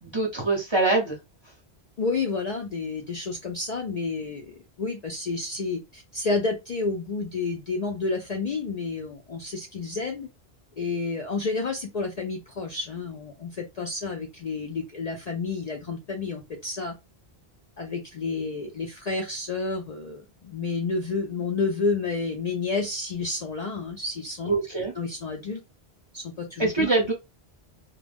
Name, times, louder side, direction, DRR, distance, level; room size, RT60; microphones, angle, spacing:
voice 1, 0.0-1.2 24.5-24.9 26.6-27.1, right 3 dB, 30° right, -1 dB, 0.7 m, -24 dB
voice 2, 2.0-10.3 10.8-16.9 17.8-24.5 25.0-25.6 26.1-26.9, left 4 dB, 55° left, 1 dB, 0.5 m, -30 dB
2.2 x 2.0 x 3.3 m, 0.23 s
omnidirectional pair, 1.1 m